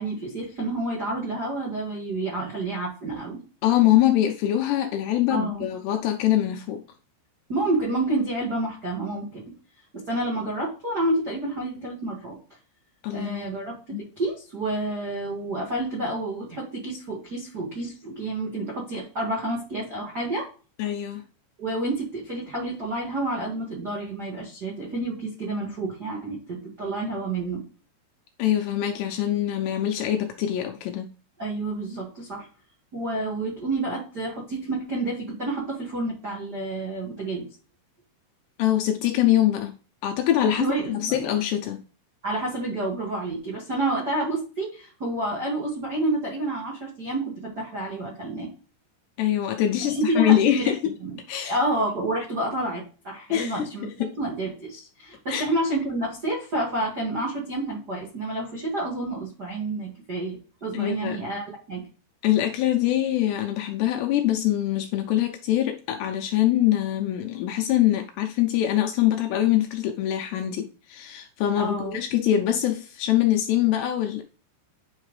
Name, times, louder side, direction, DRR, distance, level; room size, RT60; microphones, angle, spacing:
voice 1, 0.0-3.4 5.3-5.7 7.5-9.4 9.9-12.4 13.1-20.5 21.6-27.6 31.4-32.5 32.9-37.5 40.5-41.3 42.2-48.5 49.8-50.7 51.0-51.2 51.4-61.8 71.5-72.0, right 2 dB, 85° right, 0.9 m, -29 dB
voice 2, 3.6-6.8 13.0-13.5 13.9-14.0 20.8-21.3 28.4-31.1 38.6-39.8 40.0-41.8 49.2-50.9 51.3-51.6 53.3-53.7 54.0-54.2 55.3-55.5 60.7-61.2 62.2-74.2, left 12 dB, 80° left, 2.4 m, -23 dB
9.5 x 5.8 x 3.2 m
omnidirectional pair, 5.5 m